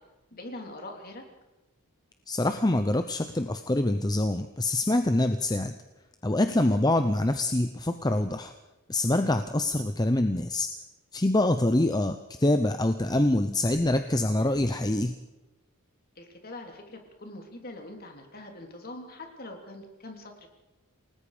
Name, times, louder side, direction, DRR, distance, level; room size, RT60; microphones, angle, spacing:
voice 1, 0.3-1.2 6.6-6.8 16.1-20.5, left 2 dB, 45° left, 3 dB, 3.4 m, -43 dB
voice 2, 2.3-5.7 6.2-8.5 8.9-10.7 11.1-15.2, left 1 dB, 20° left, 8 dB, 0.7 m, -25 dB
28.5 x 19.0 x 5.1 m, 1.0 s
head